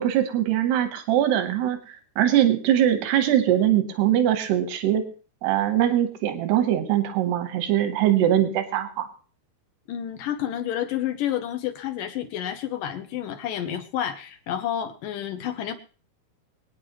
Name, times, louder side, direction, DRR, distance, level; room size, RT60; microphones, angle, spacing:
voice 1, 0.0-1.8 2.2-5.0 5.4-9.1, right 11 dB, 90° right, 7 dB, 3.3 m, -22 dB
voice 2, 9.9-15.7, left 10 dB, 70° left, 8 dB, 2.3 m, -30 dB
23.5 x 9.5 x 3.1 m, 0.38 s
omnidirectional pair, 4.5 m